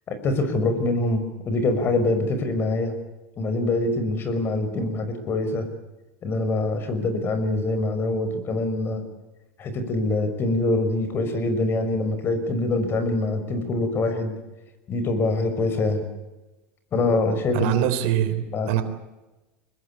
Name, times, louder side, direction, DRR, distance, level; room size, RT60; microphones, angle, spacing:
voice 1, 0.1-2.9 3.4-5.7 6.2-9.0 9.6-14.4 14.9-16.0 16.9-17.8 18.5-18.8, left 2 dB, 35° left, 10 dB, 5.7 m, -24 dB
voice 2, 17.5-18.8, right 11 dB, 70° right, 10 dB, 3.6 m, -23 dB
24.0 x 19.5 x 8.7 m, 1.1 s
supercardioid pair, 115°, 7 cm